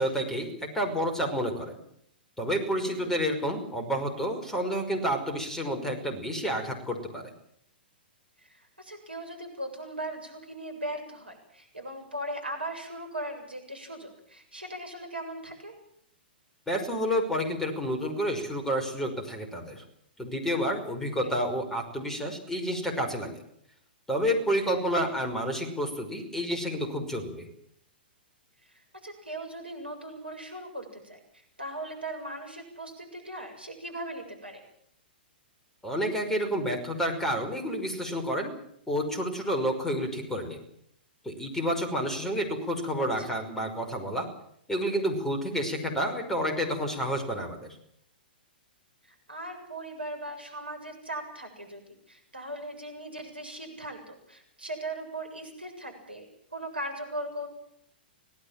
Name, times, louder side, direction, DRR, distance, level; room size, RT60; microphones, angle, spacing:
voice 1, 0.0-1.8 2.4-7.3 16.7-19.8 20.2-23.4 24.1-27.5 35.8-38.5 38.9-40.6 41.2-44.3 44.7-47.8, equal, 5° left, 4 dB, 5.7 m, -29 dB
voice 2, 2.8-3.2 8.4-15.7 21.2-21.4 28.7-34.6 43.2-43.5 49.0-56.3 56.5-57.5, right 1 dB, 85° right, 5 dB, 7.4 m, -39 dB
26.0 x 18.5 x 7.6 m, 0.71 s
figure-of-eight pair, 110°, 5 cm